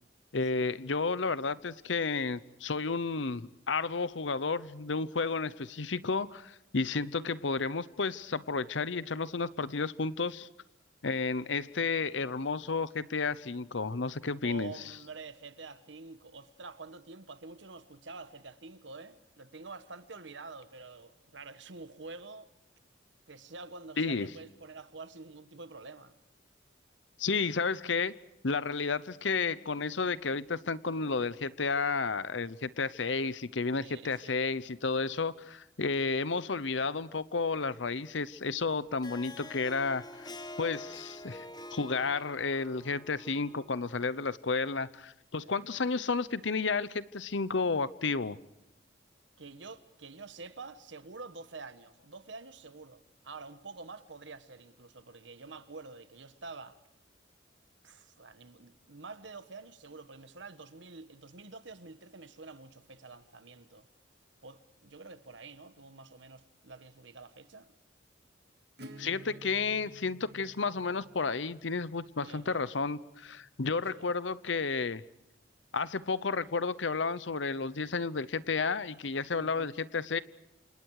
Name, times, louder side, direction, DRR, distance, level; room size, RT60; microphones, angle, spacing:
voice 1, 0.3-10.5 11.0-14.7 24.0-24.3 27.2-28.1 28.4-40.3 40.6-41.4 41.7-48.4 69.0-75.0 75.7-80.2, left 4 dB, 80° left, 0.8 m, -32 dB
voice 2, 14.4-22.5 23.3-26.1 33.8-34.4 45.4-45.7 49.4-56.8 57.8-63.9 64.4-67.7 72.2-72.7 73.7-74.0 79.3-79.7, right 3 dB, 75° right, 1.3 m, -48 dB
Harp, 38.8-44.3, left 2 dB, 20° left, 1.0 m, -47 dB
Acoustic guitar / Strum, 68.8-74.3, right 1 dB, 60° right, 2.6 m, -53 dB
28.0 x 27.5 x 4.8 m
head